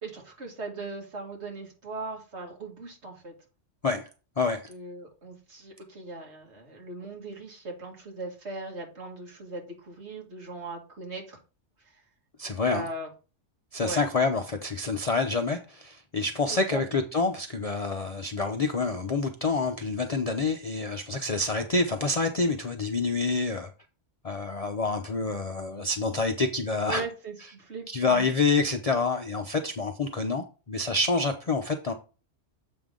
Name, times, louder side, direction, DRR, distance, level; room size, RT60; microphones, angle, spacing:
voice 1, 0.0-3.3 4.7-11.4 11.8-12.0 12.7-13.1 13.8-14.0 16.5-16.8 26.9-28.3, right 3 dB, 60° right, 2.3 m, -39 dB
voice 2, 12.4-12.8 13.7-23.7 24.2-27.0 27.9-31.9, left 3 dB, 40° left, 0.6 m, -27 dB
7.7 x 5.4 x 3.7 m
omnidirectional pair, 1.3 m